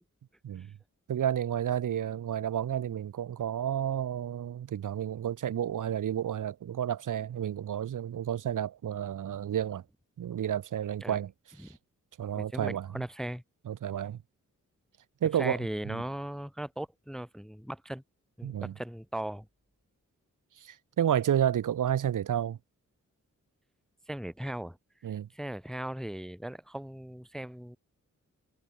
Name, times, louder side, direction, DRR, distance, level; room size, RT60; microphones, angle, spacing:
voice 1, 1.1-9.8 10.2-11.3 11.6-11.7 12.2-13.0 13.7-14.2 15.2-16.0 18.4-18.7 20.6-22.6 25.0-25.3, right 10 dB, 85° right, 0.9 m, -31 dB
voice 2, 12.4-13.4 15.4-18.0 18.4-19.5 24.1-24.8 25.3-27.8, right 1 dB, ahead, 0.5 m, -38 dB
wide cardioid pair, 160°, 31 cm